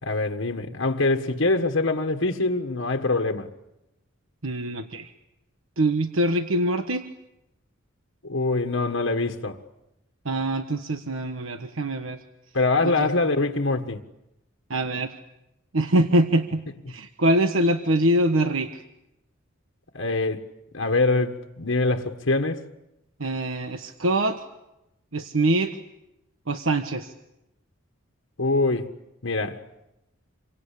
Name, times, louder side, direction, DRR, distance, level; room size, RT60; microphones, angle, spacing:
voice 1, 0.0-3.5 8.2-9.6 12.5-14.0 19.9-20.5 20.7-22.7 28.4-28.9 29.2-29.6, left 3 dB, 70° left, 1.6 m, -24 dB
voice 2, 4.4-5.1 5.8-7.0 10.2-12.2 12.8-13.1 14.7-15.1 15.7-16.6 16.9-18.8 23.2-24.4 25.1-25.8 26.5-27.1, right 1 dB, 80° right, 1.3 m, -24 dB
28.0 x 24.5 x 8.5 m
head